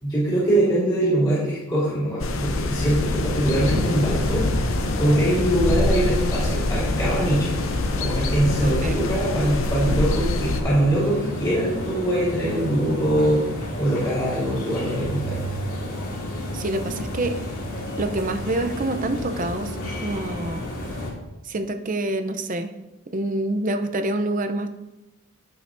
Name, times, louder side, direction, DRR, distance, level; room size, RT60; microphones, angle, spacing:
voice 1, 0.0-4.7 5.0-7.6 8.0-15.4, right 1 dB, 20° left, -10 dB, 3.6 m, -23 dB
sound 1, 2.2-10.6, left 2 dB, 65° left, 0.7 m, -25 dB
sound 2, 3.1-21.1, left 1 dB, 85° left, 2.4 m, -31 dB
voice 2, 8.6-9.0 16.5-17.3 18.0-19.7 20.0-20.6 21.5-22.7 23.1-24.7, right 2 dB, 40° right, 8 dB, 0.6 m, -26 dB
16.5 x 5.7 x 2.6 m, 0.99 s
head